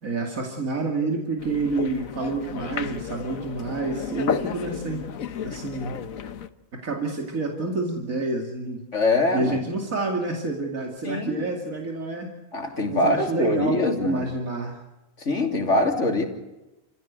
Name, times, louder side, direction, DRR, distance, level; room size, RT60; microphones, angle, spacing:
voice 1, 0.0-5.0 5.4-6.0 6.8-8.8 9.3-12.3 12.9-14.8, right 3 dB, 90° right, 1 dB, 2.9 m, -28 dB
sound 1, 1.4-6.5, left 7 dB, 90° left, 1.4 m, -32 dB
voice 2, 8.9-9.6 11.0-11.4 12.5-14.3 15.2-16.2, left 2 dB, 60° left, 3 dB, 3.6 m, -23 dB
29.0 x 16.0 x 8.2 m, 1.0 s
omnidirectional pair, 1.4 m